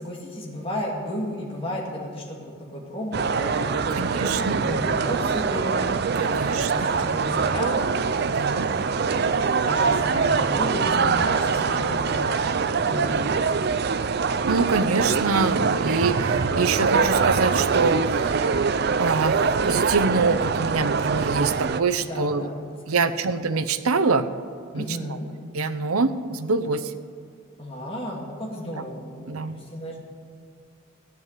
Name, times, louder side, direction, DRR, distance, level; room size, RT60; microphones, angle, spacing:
voice 1, 0.0-5.8 6.3-6.5 6.7-7.8 8.9-12.3 12.6-14.0 22.1-23.1 24.7-25.3 27.6-30.0, equal, 25° left, -2 dB, 2.3 m, -33 dB
sound 1, 3.1-21.8, right 5 dB, 50° right, 0.4 m, -23 dB
voice 2, 3.9-4.7 6.2-6.7 8.2-8.7 14.5-18.6 19.0-22.5 22.9-24.3 24.7-25.0 25.5-26.9 29.3-29.5, right 4 dB, 90° right, 13 dB, 0.7 m, -25 dB
14.0 x 9.5 x 7.5 m, 2.2 s
head